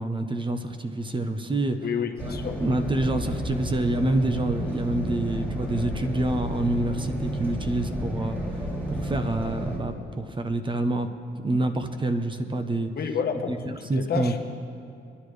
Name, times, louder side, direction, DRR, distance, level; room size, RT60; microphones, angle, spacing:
voice 1, 0.0-1.8 2.2-2.3 2.6-8.4 8.9-11.1 11.4-12.9 13.5-13.6 13.9-14.4, right 2 dB, 25° right, 7 dB, 0.8 m, -27 dB
voice 2, 1.8-2.6 13.0-14.4, left 6 dB, 50° left, 4 dB, 1.2 m, -30 dB
sound 1, 2.2-9.8, right 1 dB, 10° right, 3.8 m, -31 dB
22.0 x 10.5 x 3.3 m, 2.6 s
cardioid pair, 90°, 20 cm